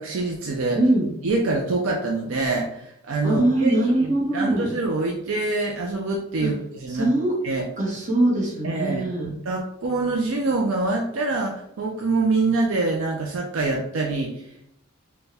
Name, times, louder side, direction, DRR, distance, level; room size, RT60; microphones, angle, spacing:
voice 1, 0.0-0.8 1.2-7.1 7.4-7.6 8.6-9.0 9.5-14.6, right 3 dB, 60° right, 1 dB, 0.4 m, -25 dB
voice 2, 0.7-1.1 3.2-4.7 6.4-6.5 6.9-7.3 7.8-9.3, right 1 dB, 35° right, -3 dB, 1.1 m, -22 dB
4.3 x 2.2 x 3.4 m, 0.75 s
head